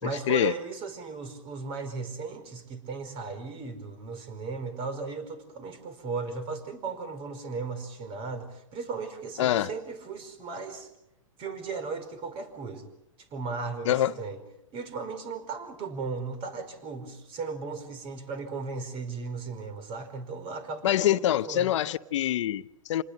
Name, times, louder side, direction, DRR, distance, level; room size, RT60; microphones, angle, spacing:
voice 1, 0.0-10.9 11.4-12.9 13.2-14.4 14.7-21.7, right 4 dB, 35° right, 5.0 m, -36 dB
voice 2, 9.4-9.7 13.9-14.1 20.8-23.0, left 12 dB, 65° left, 0.9 m, -25 dB
28.0 x 20.0 x 7.7 m
hypercardioid pair, 130°, 17 cm